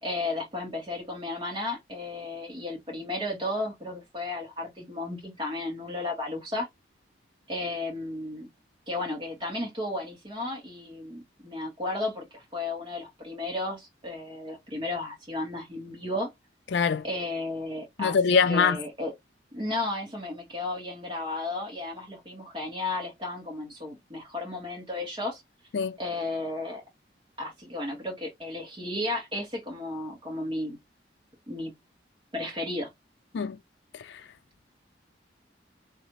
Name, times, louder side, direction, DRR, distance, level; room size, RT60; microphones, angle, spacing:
voice 1, 0.0-6.7 7.5-8.5 8.9-16.3 17.0-18.2 18.5-19.1 19.5-25.4 26.0-26.8 27.4-30.8 31.5-31.7 32.3-32.9, left 2 dB, 25° right, 1.9 m, -33 dB
voice 2, 16.7-17.0 18.0-18.8 25.7-26.0 33.3-33.6 33.9-34.2, left 5 dB, 70° left, 0.4 m, -24 dB
3.2 x 2.7 x 3.1 m
head